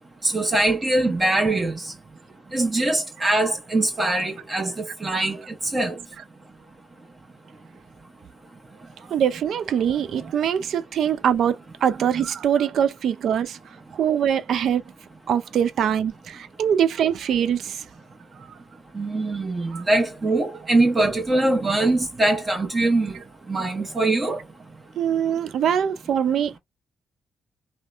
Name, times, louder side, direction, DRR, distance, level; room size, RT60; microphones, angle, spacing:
voice 1, 0.2-1.8 2.5-5.4 5.7-5.9 18.9-23.1 23.5-24.4, right 2 dB, 30° right, 0.8 m, -22 dB
voice 2, 9.1-13.6 13.9-14.8 15.3-17.8 19.7-19.8 25.0-26.6, right 8 dB, 70° right, 0.4 m, -23 dB
2.8 x 2.1 x 2.3 m
supercardioid pair, 55°, 0 cm